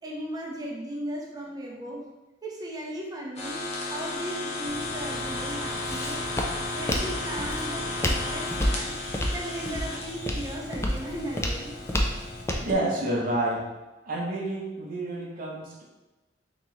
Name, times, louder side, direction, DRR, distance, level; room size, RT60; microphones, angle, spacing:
voice 1, 0.0-2.0 2.4-3.6 3.9-6.2 6.7-8.9 9.3-11.7, right 1 dB, 20° right, -3 dB, 0.7 m, -36 dB
sound 1, 3.4-12.4, left 2 dB, 35° left, 0.8 m, -34 dB
Walk footsteps, 4.7-12.7, left 1 dB, 15° left, 0.4 m, -31 dB
voice 2, 12.6-13.6 14.1-15.8, right 1 dB, 50° right, -2 dB, 0.7 m, -29 dB
3.0 x 2.9 x 3.7 m, 1.1 s
head